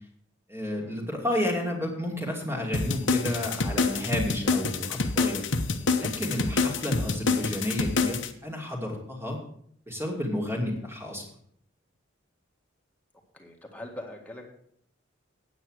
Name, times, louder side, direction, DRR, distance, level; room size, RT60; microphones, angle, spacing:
voice 1, 0.5-5.5 6.0-9.4 9.9-11.2, left 1 dB, 15° right, 0 dB, 2.6 m, -31 dB
sound 1, 2.7-8.3, left 4 dB, 75° left, 1.0 m, -26 dB
voice 2, 13.3-14.5, left 1 dB, 10° left, 0 dB, 1.9 m, -43 dB
9.2 x 9.1 x 6.5 m, 0.66 s
head